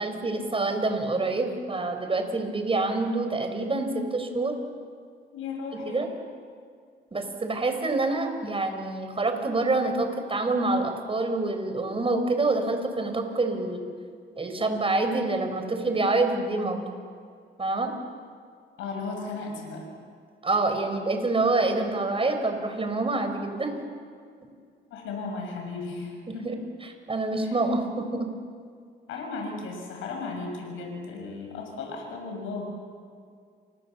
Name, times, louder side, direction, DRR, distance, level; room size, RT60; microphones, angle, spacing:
voice 1, 0.0-4.5 5.7-6.1 7.1-13.8 14.4-16.8 17.6-17.9 20.4-23.7 26.3-26.5 26.8-28.3, right 2 dB, 30° right, 6 dB, 5.0 m, -26 dB
voice 2, 5.3-6.0 18.8-19.9 24.9-26.5 27.4-27.5 29.1-32.8, left 4 dB, 90° left, 1 dB, 7.2 m, -35 dB
29.5 x 26.0 x 7.3 m, 2.2 s
cardioid pair, 90°, 20 cm